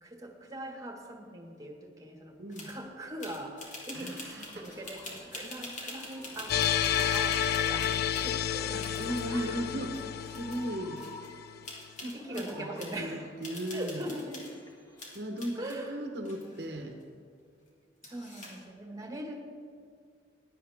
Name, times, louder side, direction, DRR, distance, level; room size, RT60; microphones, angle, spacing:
voice 1, 0.0-2.4 2.7-8.9 9.3-9.7 12.1-13.3 13.7-14.4 15.6-16.0 18.1-19.4, right 1 dB, 20° right, 1 dB, 1.7 m, -41 dB
voice 2, 2.4-2.7 3.9-4.6 5.4-6.1 9.0-9.9 10.3-11.0 12.0-14.0 15.1-17.0, equal, 65° right, 4 dB, 1.1 m, -37 dB
sound 1, 2.5-2.8 3.2-8.3 8.8-9.4 9.9-10.0 10.3-10.7 11.0-11.3 11.6-13.0 13.4-14.6 15.0-15.8 16.2-17.0 18.0-18.6, left 2 dB, 45° left, 2.6 m, -45 dB
sound 2, 4.4-15.1, left 1 dB, 20° left, 1.5 m, -51 dB
sound 3, 6.5-11.6, left 9 dB, 60° left, 0.4 m, -30 dB
16.5 x 11.0 x 3.6 m, 2.2 s
head